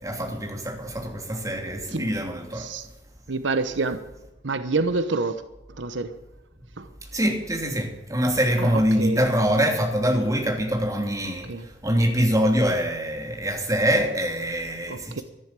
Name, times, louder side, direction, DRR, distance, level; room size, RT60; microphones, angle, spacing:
voice 1, 0.0-2.7 7.1-15.2, equal, 20° right, 2 dB, 2.9 m, -24 dB
voice 2, 2.5-2.9 3.3-4.0 4.4-5.4 5.7-6.1 6.8-6.9 8.6-9.2 11.4-11.7 14.9-15.2, right 3 dB, 85° right, 11 dB, 0.9 m, -27 dB
13.0 x 11.0 x 7.5 m, 1.0 s
head